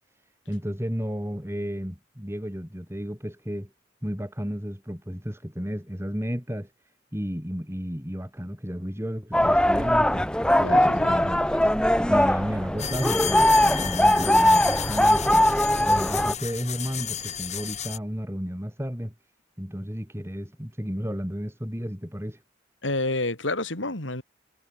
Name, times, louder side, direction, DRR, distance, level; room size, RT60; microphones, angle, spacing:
voice 1, 0.5-3.7 4.0-6.7 7.1-10.3 10.6-11.7 12.1-19.1 19.6-22.4, equal, 15° right, 5.0 m, -33 dB
sound 1, 9.3-16.3, left 1 dB, 5° left, 1.3 m, -21 dB
voice 2, 10.6-11.3 22.8-24.2, left 2 dB, 90° left, 5.2 m, -29 dB
sound 2, 12.8-18.0, left 9 dB, 35° left, 3.8 m, -33 dB
head